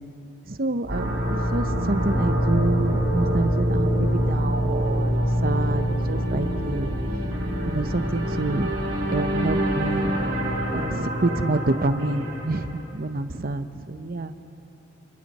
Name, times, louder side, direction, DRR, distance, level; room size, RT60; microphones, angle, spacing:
voice 1, 0.5-5.1 5.4-6.9 7.6-8.7 9.1-10.2 10.7-14.3, right 2 dB, 45° right, 10 dB, 0.9 m, -28 dB
sound 1, 0.8-12.8, equal, 75° right, 5.0 m, -25 dB
28.5 x 28.5 x 4.3 m, 2.9 s
head